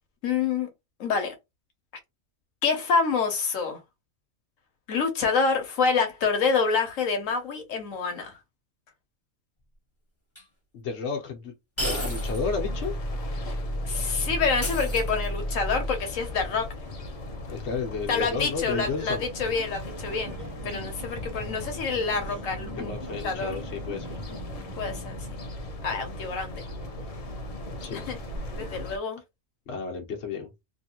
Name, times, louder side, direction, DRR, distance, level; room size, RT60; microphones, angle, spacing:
voice 1, 0.2-0.7 1.0-1.3 2.6-3.8 4.9-8.4 13.8-16.7 18.1-20.4 20.6-23.0 23.2-23.5 24.8-25.3 25.8-26.6 27.9-28.2 28.5-29.2, left 5 dB, 85° left, 1.2 m, -27 dB
sound 1, 10.3-10.4 11.8-12.5 12.8-12.9 14.6-15.5, equal, 10° left, 1.4 m, -33 dB
voice 2, 10.7-11.5 11.8-12.9 17.5-19.2 22.8-24.2 27.8-28.0 29.7-30.5, left 5 dB, 65° left, 1.1 m, -32 dB
sound 2, 11.8-29.0, left 1 dB, 45° left, 0.4 m, -35 dB
sound 3, 19.9-25.2, right 1 dB, 15° right, 0.7 m, -43 dB
3.1 x 2.6 x 2.9 m
omnidirectional pair, 1.3 m